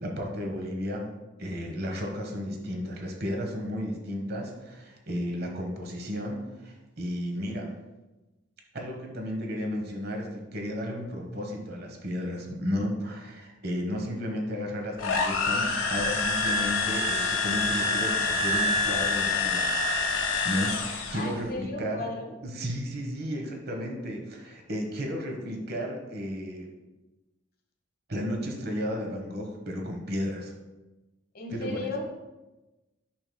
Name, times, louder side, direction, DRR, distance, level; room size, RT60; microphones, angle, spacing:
voice 1, 0.0-1.1 1.4-7.7 8.7-19.8 20.4-22.1 22.4-26.7 28.1-30.5 31.5-31.8, equal, 50° right, 2 dB, 1.1 m, -33 dB
sound 1, 15.0-21.3, left 3 dB, 90° left, 1.0 m, -26 dB
voice 2, 21.1-22.3 31.3-32.1, left 2 dB, 45° left, 2 dB, 1.2 m, -35 dB
9.8 x 6.3 x 2.2 m, 1.1 s
head